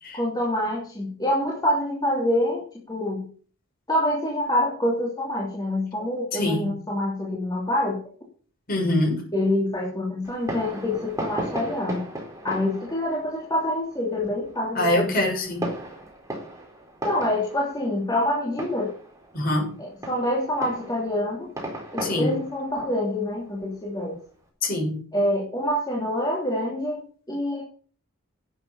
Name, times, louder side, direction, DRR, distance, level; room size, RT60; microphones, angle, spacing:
voice 1, 0.1-3.2 3.9-8.0 9.3-12.1 12.4-15.2 17.0-18.9 19.8-21.5 21.9-24.2 25.1-27.0 27.3-27.6, left 1 dB, 20° left, -4 dB, 3.0 m, -26 dB
voice 2, 6.3-6.7 8.7-9.2 14.8-15.7 19.3-19.7 22.0-22.3 24.6-25.0, left 1 dB, 45° left, 0 dB, 7.1 m, -24 dB
Fireworks, 10.2-24.4, right 1 dB, 15° right, 4.5 m, -37 dB
11.5 x 8.7 x 7.0 m, 0.42 s
head